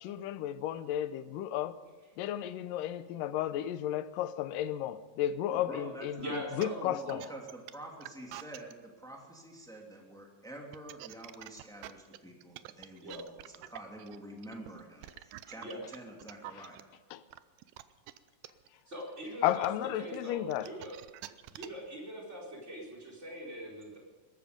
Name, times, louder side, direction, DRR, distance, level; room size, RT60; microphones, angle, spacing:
voice 1, 0.0-1.8 2.2-7.2 17.1-17.2 19.4-20.7, left 12 dB, 85° left, 2.3 m, -33 dB
voice 2, 5.5-6.4 6.6-16.9, right 1 dB, ahead, 2.2 m, -48 dB
voice 3, 6.1-7.3 13.0-13.2 15.6-15.8 18.9-19.7 20.0-20.9 21.5-24.0, equal, 20° right, 4.6 m, -42 dB
sound 1, 6.2-8.7 10.6-16.8 17.3-21.9, right 15 dB, 85° right, 2.3 m, -47 dB
21.5 x 13.0 x 5.2 m
omnidirectional pair, 3.8 m